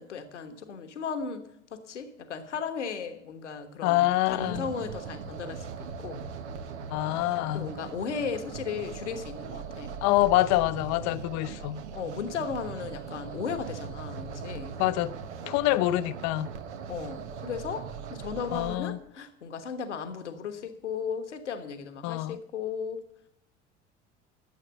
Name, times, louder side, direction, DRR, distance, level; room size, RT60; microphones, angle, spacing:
voice 1, 0.0-6.2 7.5-10.0 11.9-14.7 16.9-23.0, left 6 dB, 80° left, 1.3 m, -36 dB
voice 2, 3.8-4.7 6.9-7.7 10.0-11.8 14.8-15.1 15.4-16.5 18.5-19.0 22.0-22.4, left 16 dB, 50° left, 0.7 m, -26 dB
sound 1, 4.4-18.8, right 6 dB, 75° right, 1.1 m, -40 dB
12.5 x 7.6 x 6.9 m
figure-of-eight pair, 70°, 35 cm